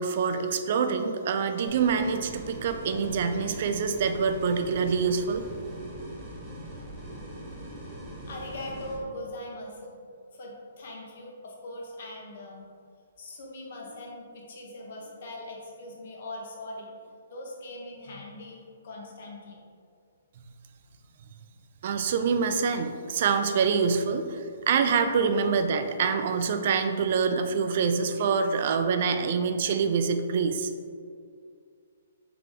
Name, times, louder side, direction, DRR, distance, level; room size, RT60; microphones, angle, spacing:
voice 1, 0.0-5.4 21.8-30.7, right 5 dB, 50° right, 7 dB, 0.3 m, -26 dB
sound 1, 1.7-9.0, right 1 dB, 15° right, 0.8 m, -41 dB
voice 2, 8.3-12.7 13.2-16.9 17.3-19.6, left 1 dB, 55° left, -1 dB, 1.0 m, -41 dB
3.8 x 3.4 x 3.6 m, 2.3 s
hypercardioid pair, 160°, 0 cm